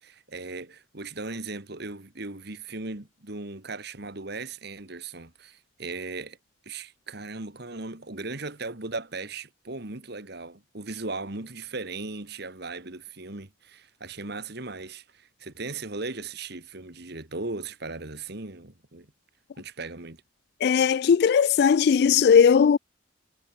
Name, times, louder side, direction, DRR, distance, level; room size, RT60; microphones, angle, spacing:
voice 1, 0.0-6.4 6.7-19.1 19.6-20.2, right 3 dB, 55° right, 2.1 m, -37 dB
voice 2, 20.6-22.8, left 7 dB, 55° left, 0.3 m, -18 dB
head